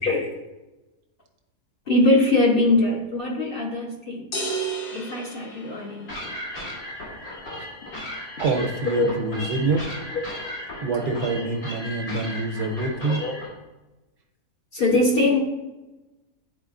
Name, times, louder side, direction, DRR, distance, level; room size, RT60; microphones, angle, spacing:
voice 1, 0.0-0.3 1.9-4.3 4.9-6.3 7.6-7.7 8.9-9.1 10.1-10.2 11.4-11.5 13.0-13.4 14.7-15.4, left 2 dB, 45° left, -1 dB, 0.9 m, -22 dB
sound 1, 4.3-6.4, right 3 dB, 85° left, 1.7 m, -32 dB
sound 2, 6.1-13.5, left 1 dB, 65° left, 2.3 m, -36 dB
voice 2, 8.4-9.8 10.8-13.2, right 3 dB, 90° right, 3 dB, 1.5 m, -25 dB
10.5 x 4.3 x 2.4 m, 1.1 s
omnidirectional pair, 1.7 m